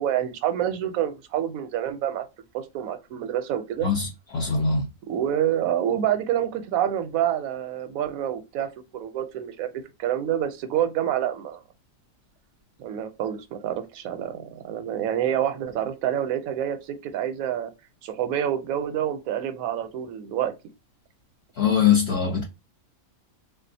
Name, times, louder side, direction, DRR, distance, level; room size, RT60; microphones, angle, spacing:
voice 1, 0.0-2.2 2.5-3.9 5.1-11.6 12.8-17.7 18.0-20.5, right 10 dB, 85° right, 1.0 m, -27 dB
voice 2, 3.8-4.9 21.6-22.4, left 6 dB, 55° left, 0.8 m, -22 dB
3.6 x 2.4 x 2.6 m
omnidirectional pair, 1.4 m